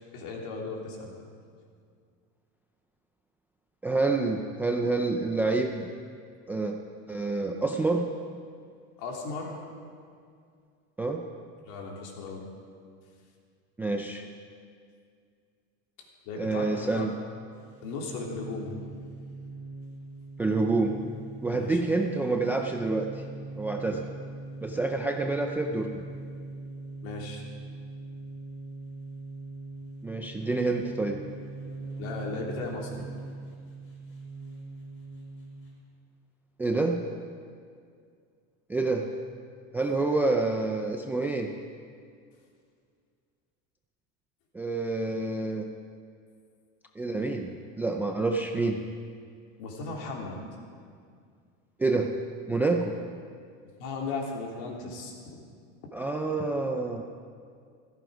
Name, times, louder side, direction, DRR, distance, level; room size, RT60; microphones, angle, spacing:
voice 1, 0.1-1.1 9.0-9.6 11.6-12.4 16.2-17.1 17.8-18.7 21.5-21.8 27.0-27.4 32.0-33.1 49.6-50.4 53.8-55.1, left 3 dB, 60° left, -1 dB, 3.2 m, -36 dB
voice 2, 3.8-5.9 6.5-6.8 7.1-8.1 11.0-11.2 13.8-14.2 16.4-17.1 20.4-21.0 21.4-23.2 23.6-24.0 24.6-25.9 30.0-31.2 36.6-37.0 38.7-39.1 39.7-41.5 44.5-45.7 47.0-47.5 47.8-48.8 51.8-52.1 52.5-53.0 55.9-57.0, right 3 dB, 5° right, 2 dB, 0.3 m, -27 dB
sound 1, 17.5-35.8, right 3 dB, 35° left, 4.6 m, -42 dB
16.0 x 14.5 x 5.1 m, 2.2 s
cardioid pair, 160°, 36 cm